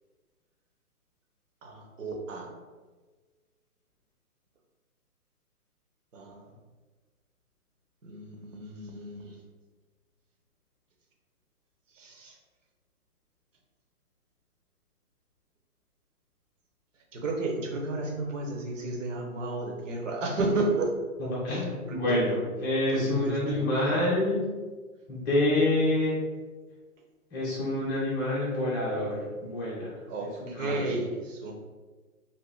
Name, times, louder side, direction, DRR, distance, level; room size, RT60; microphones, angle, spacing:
voice 1, 1.6-2.5 6.1-6.5 8.0-9.4 11.9-12.4 17.1-20.9 21.5-22.2 22.9-24.0 30.1-31.5, right 2 dB, 55° right, 0 dB, 0.9 m, -33 dB
voice 2, 21.2-24.4 25.1-26.2 27.3-30.0 30.4-30.9, left 1 dB, 15° left, -8 dB, 0.7 m, -27 dB
2.8 x 2.5 x 3.8 m, 1.3 s
figure-of-eight pair, 140°, 45 cm